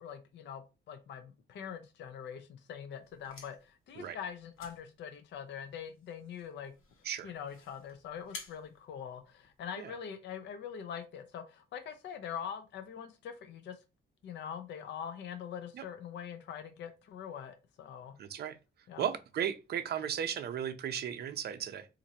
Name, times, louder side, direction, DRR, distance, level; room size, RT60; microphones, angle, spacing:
voice 1, 0.0-6.7 7.2-13.8 14.2-18.1 18.9-19.1, left 8 dB, 60° left, 0.5 m, -43 dB
sound 1, 3.0-9.8, left 4 dB, 80° left, 1.1 m, -54 dB
voice 2, 18.2-18.5 19.0-21.9, right 9 dB, 50° right, 0.5 m, -35 dB
4.1 x 2.5 x 2.7 m
wide cardioid pair, 165°, 21 cm